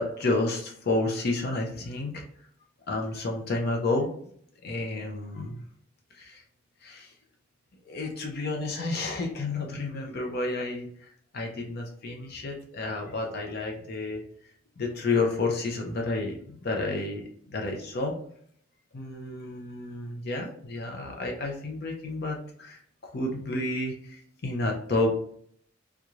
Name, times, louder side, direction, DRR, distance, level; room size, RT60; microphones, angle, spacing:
voice 1, 0.0-2.2 2.9-4.1 4.6-5.6 6.2-6.4 6.8-7.1 7.8-14.2 14.8-17.2 17.5-18.1 18.9-25.2, left 2 dB, 55° left, 1 dB, 0.6 m, -30 dB
3.5 x 3.1 x 2.4 m, 0.63 s
head